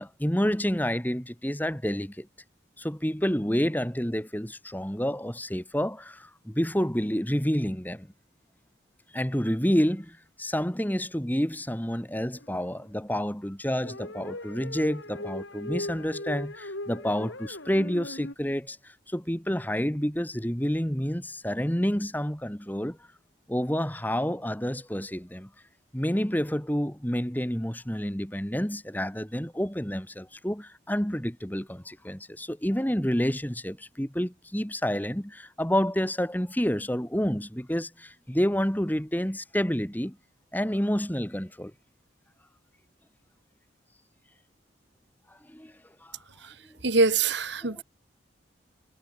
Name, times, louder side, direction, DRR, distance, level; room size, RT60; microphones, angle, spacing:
voice 1, 0.0-2.3 2.8-8.1 9.1-23.0 23.5-25.5 25.9-40.2 40.5-41.7 45.5-45.7 46.0-46.2 47.6-47.8, equal, 10° left, 2.2 m, -29 dB
sound 1, 12.4-12.7 13.8-18.3, left 1 dB, 80° left, 7.3 m, -38 dB
voice 2, 46.8-47.8, right 3 dB, 65° right, 2.3 m, -23 dB
head